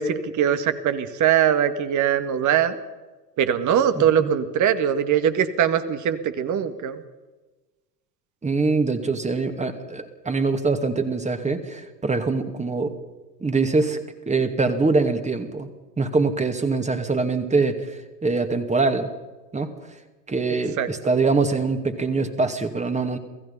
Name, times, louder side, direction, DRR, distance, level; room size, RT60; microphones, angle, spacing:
voice 1, 0.0-2.8 3.4-7.0 20.8-20.9, right 9 dB, 35° right, 10 dB, 2.0 m, -21 dB
voice 2, 8.4-13.0 13.4-14.0 14.3-15.7 16.0-19.1 19.5-19.7 20.3-23.2, right 3 dB, 15° right, 7 dB, 2.4 m, -23 dB
28.0 x 16.5 x 5.6 m, 1.2 s
figure-of-eight pair, 85°, 49 cm